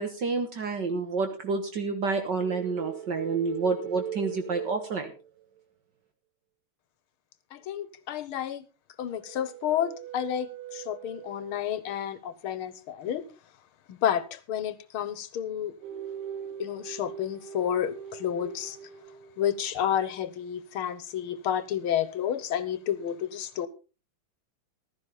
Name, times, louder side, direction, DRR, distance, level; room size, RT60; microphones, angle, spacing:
voice 1, 0.0-5.1, right 4 dB, 55° right, 6 dB, 1.9 m, -29 dB
sound 1, 2.4-5.6 9.1-11.7 15.8-19.6, right 10 dB, 90° right, 1.9 m, -41 dB
voice 2, 7.5-8.6 9.0-13.2 13.9-15.7 16.6-18.8 19.4-23.7, left 10 dB, 75° left, 15 dB, 1.9 m, -30 dB
15.0 x 13.0 x 4.0 m, 0.33 s
omnidirectional pair, 2.3 m